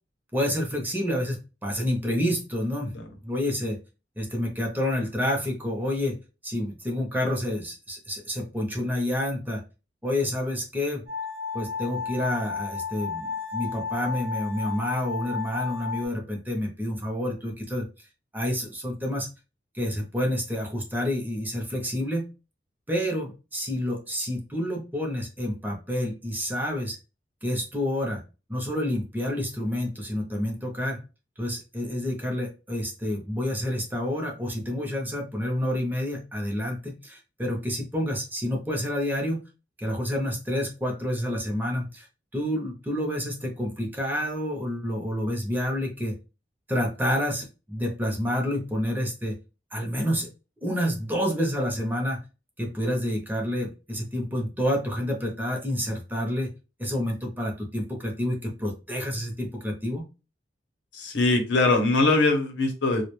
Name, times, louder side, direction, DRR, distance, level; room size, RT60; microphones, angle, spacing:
voice 1, 0.3-2.9 3.2-3.8 4.2-6.2 6.4-9.6 10.0-11.0 11.5-17.9 18.3-19.3 19.7-22.2 22.9-27.0 27.4-28.2 28.5-31.0 31.4-39.4 39.8-42.1 42.3-46.1 46.7-49.3 49.7-50.3 50.6-52.2 52.6-56.5 56.8-60.0, left 1 dB, 10° right, 1 dB, 0.6 m, -28 dB
sound 1, 11.1-16.0, left 5 dB, 60° right, 0.6 m, -33 dB
voice 2, 60.9-63.0, left 2 dB, 85° left, 4 dB, 0.7 m, -22 dB
2.2 x 2.1 x 3.0 m, 0.30 s
head